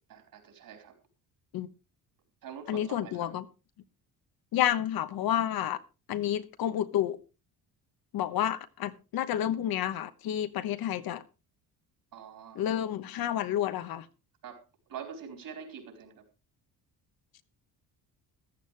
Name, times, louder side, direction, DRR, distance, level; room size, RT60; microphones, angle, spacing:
voice 1, 0.1-1.0 2.4-3.3 12.1-12.7 14.4-14.6 14.9-16.2, right 7 dB, 60° right, 4.5 m, -45 dB
voice 2, 2.7-3.4 4.5-5.8 6.1-7.2 8.1-11.2 12.5-14.1, left 11 dB, 65° left, 1.1 m, -30 dB
14.5 x 13.0 x 3.3 m
cardioid pair, 155°, 39 cm